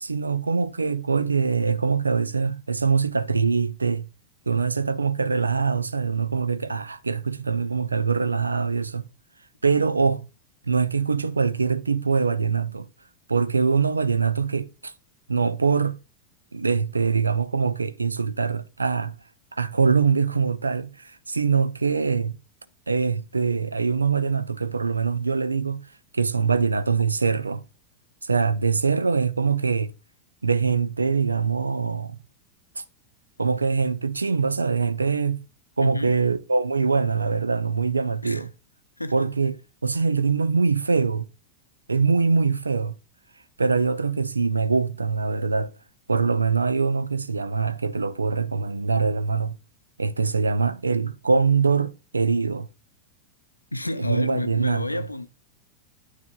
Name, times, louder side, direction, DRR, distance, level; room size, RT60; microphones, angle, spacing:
voice 1, 0.0-4.1 4.5-9.1 9.6-10.3 10.7-12.9 13.3-14.9 15.3-16.0 16.5-19.2 19.6-22.3 22.9-25.8 26.1-27.6 28.2-29.9 30.4-32.2 32.8-32.9 33.4-35.4 35.8-38.5 39.1-41.3 41.9-43.0 43.6-45.7 46.1-49.6 50.0-52.7 54.0-55.0, right 5 dB, 80° right, 0.4 m, -23 dB
voice 2, 35.8-36.2 38.2-38.4 39.0-39.3 53.7-55.3, left 2 dB, 85° left, 0.5 m, -29 dB
9.4 x 9.3 x 2.2 m
figure-of-eight pair, 90°, 0 cm